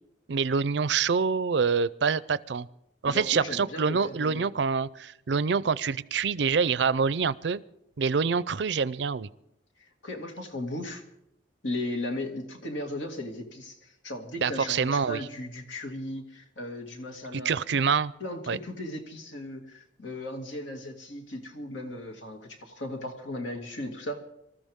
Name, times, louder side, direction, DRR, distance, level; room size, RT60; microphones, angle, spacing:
voice 1, 0.3-2.7 3.0-7.6 8.0-9.3 14.4-15.2 17.3-18.1 18.5-18.6, right 5 dB, 70° right, 18 dB, 0.5 m, -26 dB
voice 2, 3.1-4.5 10.0-11.0 11.6-17.8 18.2-24.2, left 1 dB, 85° left, 4 dB, 2.4 m, -36 dB
25.5 x 13.5 x 3.6 m, 0.83 s
head